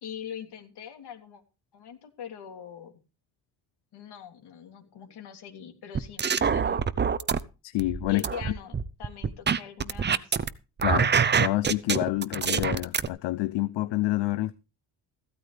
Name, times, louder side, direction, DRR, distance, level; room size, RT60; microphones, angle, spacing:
voice 1, 0.0-1.4 1.7-2.9 3.9-6.9 8.1-10.3, left 8 dB, 70° left, 3.3 m, -42 dB
sound 1, 5.9-7.4 7.8-10.5 10.8-13.1, right 6 dB, 25° right, 0.7 m, -25 dB
voice 2, 7.6-8.2 10.8-11.1 11.4-14.5, left 17 dB, 85° left, 0.8 m, -28 dB
15.5 x 13.0 x 3.4 m
cardioid pair, 130°, 42 cm